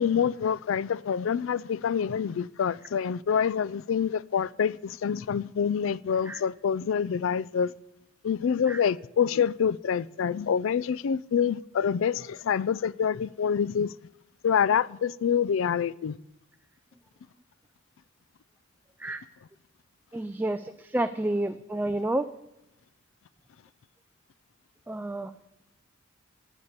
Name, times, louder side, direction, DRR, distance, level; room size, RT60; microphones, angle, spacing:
voice 1, 0.0-7.7 8.2-13.9 14.4-16.2, left 7 dB, 65° left, 0.4 m, -26 dB
voice 2, 20.1-22.3 24.9-25.3, right 1 dB, 10° right, 0.3 m, -29 dB
11.0 x 8.1 x 8.8 m
head